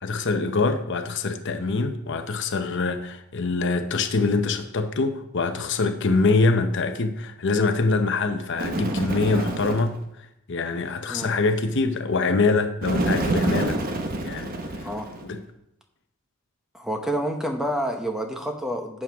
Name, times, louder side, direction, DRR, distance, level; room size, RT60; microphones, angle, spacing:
voice 1, 0.0-13.8 14.2-14.6 15.2-15.4, left 3 dB, 55° left, 0.7 m, -24 dB
Bird, 8.6-10.0 12.8-15.3, right 1 dB, 40° right, 1.0 m, -27 dB
voice 2, 16.7-19.0, equal, ahead, 0.9 m, -28 dB
11.0 x 7.6 x 3.5 m
head